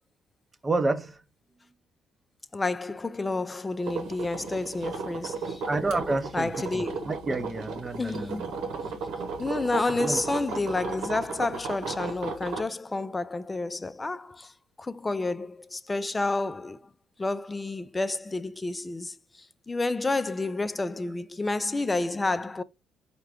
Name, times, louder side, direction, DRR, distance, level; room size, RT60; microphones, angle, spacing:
voice 1, 0.6-1.2 5.7-8.5 9.9-10.2, right 3 dB, 25° right, 0.7 m, -29 dB
voice 2, 2.5-5.6 6.3-7.1 8.0-8.4 9.4-14.5 14.8-16.8 17.2-22.6, left 2 dB, 20° left, 0.4 m, -30 dB
sound 1, 3.8-12.6, right 4 dB, 75° right, 1.1 m, -34 dB
4.7 x 2.2 x 3.5 m
supercardioid pair, 70°, 0 cm